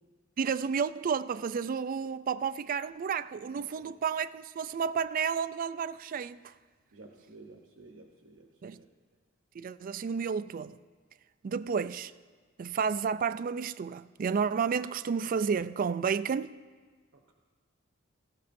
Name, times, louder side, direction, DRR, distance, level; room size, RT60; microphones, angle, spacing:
voice 1, 0.4-6.5 8.6-8.8 9.5-10.8 11.4-12.1 12.6-16.5, right 6 dB, 45° right, 0.3 m, -31 dB
voice 2, 3.5-3.9 6.9-8.9 17.1-17.3, right 2 dB, 70° right, 0.9 m, -53 dB
18.0 x 15.5 x 2.6 m
head